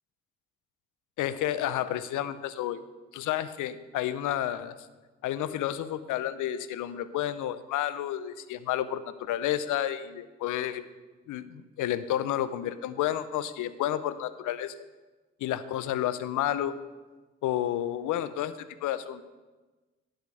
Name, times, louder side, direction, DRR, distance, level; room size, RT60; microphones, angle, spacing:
voice 1, 1.2-2.8 3.1-4.7 5.2-10.9 11.3-14.7 15.4-16.7 17.4-19.3, left 12 dB, 80° left, 15 dB, 0.6 m, -31 dB
10.5 x 5.1 x 6.2 m, 1.2 s
supercardioid pair, 45°, 31 cm